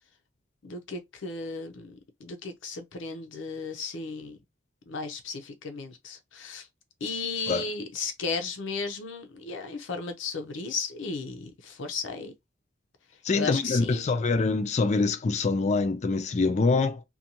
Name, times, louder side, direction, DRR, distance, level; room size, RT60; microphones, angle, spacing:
voice 1, 0.6-4.4 4.9-6.7 7.0-12.3 13.3-14.1, left 4 dB, 90° left, 0.6 m, -35 dB
voice 2, 13.2-17.0, left 3 dB, 35° left, 0.3 m, -25 dB
2.6 x 2.2 x 2.8 m
head